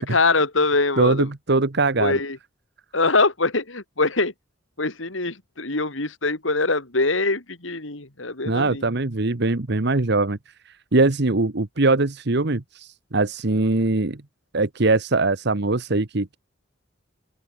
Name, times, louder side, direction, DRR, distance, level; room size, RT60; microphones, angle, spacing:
voice 1, 0.1-1.3 2.0-2.4 2.9-4.3 4.8-8.8, left 3 dB, 90° left, 3.6 m, -23 dB
voice 2, 1.0-2.2 8.4-10.4 10.7-14.2 14.5-16.4, right 3 dB, 60° right, 1.2 m, -22 dB
open air
head